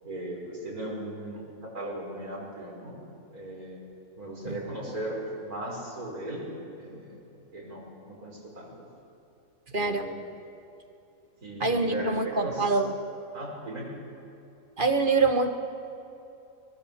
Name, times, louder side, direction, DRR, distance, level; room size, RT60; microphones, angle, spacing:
voice 1, 0.0-3.0 3.3-3.8 4.2-6.5 6.8-7.2 7.5-8.7 9.7-10.2 11.4-12.7 13.3-14.0, right 1 dB, 90° right, -3 dB, 6.1 m, -37 dB
voice 2, 9.7-10.1 11.6-12.9 14.8-15.6, right 3 dB, 40° right, 6 dB, 1.3 m, -25 dB
23.5 x 22.0 x 7.2 m, 2.8 s
omnidirectional pair, 1.5 m